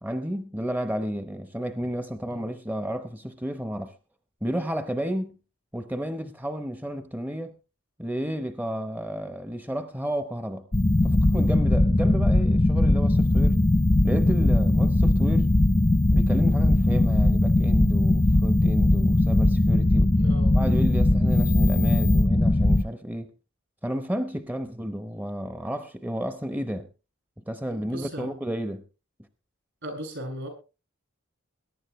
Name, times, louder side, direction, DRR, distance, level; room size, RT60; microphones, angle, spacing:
voice 1, 0.0-3.9 4.4-5.4 5.7-7.5 8.0-10.7 11.0-13.6 14.0-15.5 16.1-20.1 20.5-23.3 23.8-26.9 27.5-28.9, equal, 10° right, 0.8 m, -31 dB
sound 1, 10.7-22.8, left 1 dB, 25° left, 0.6 m, -20 dB
voice 2, 20.2-20.6 27.7-28.3 29.8-30.5, equal, 65° right, 6.8 m, -37 dB
21.0 x 11.0 x 3.1 m
head